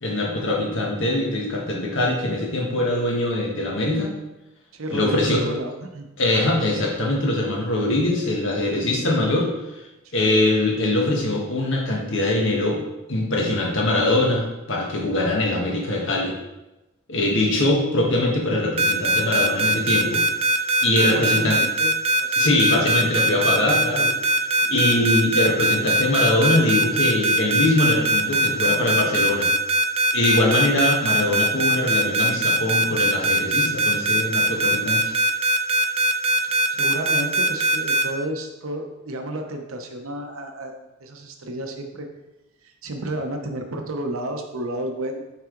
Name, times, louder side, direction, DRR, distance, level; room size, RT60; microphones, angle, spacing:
voice 1, 0.0-4.1 4.9-5.4 6.2-9.5 10.1-12.8 13.1-16.3 17.1-20.2 20.8-21.6 22.4-24.1 24.7-29.5 30.1-35.1, left 1 dB, 60° left, -1 dB, 1.4 m, -22 dB
voice 2, 4.7-6.1 10.0-10.3 20.9-21.9 22.2-22.8 24.6-24.9 36.7-40.7 41.0-42.1 42.6-45.2, right 1 dB, 75° right, 4 dB, 0.9 m, -31 dB
sound 1, 18.8-38.0, right 1 dB, 30° right, 0.5 m, -20 dB
5.7 x 4.8 x 3.8 m, 1.0 s
head